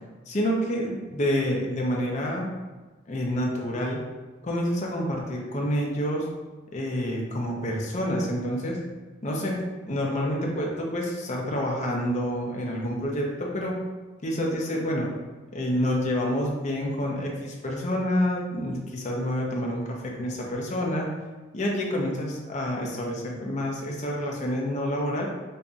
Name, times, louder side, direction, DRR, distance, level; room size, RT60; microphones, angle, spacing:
voice 1, 0.3-2.5 3.1-4.0 4.4-6.3 6.7-8.8 9.2-13.8 14.2-15.1 15.5-21.1 21.5-25.3, equal, 35° left, -1 dB, 0.6 m, -28 dB
5.3 x 2.6 x 2.3 m, 1.3 s
head